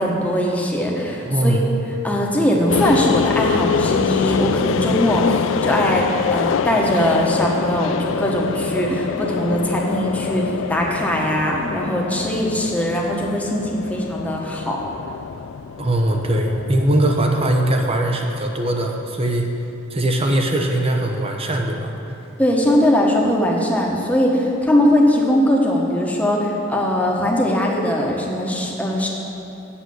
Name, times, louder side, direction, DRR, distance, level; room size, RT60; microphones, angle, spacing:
voice 1, 0.0-1.6 2.0-14.8 22.4-29.1, equal, 10° left, -2 dB, 1.3 m, -20 dB
voice 2, 1.3-1.6 15.8-19.5 19.9-21.9, right 1 dB, 30° right, 2 dB, 1.0 m, -20 dB
sound 1, 2.7-17.9, left 6 dB, 70° left, 0.3 m, -25 dB
8.6 x 6.9 x 7.7 m, 2.8 s
head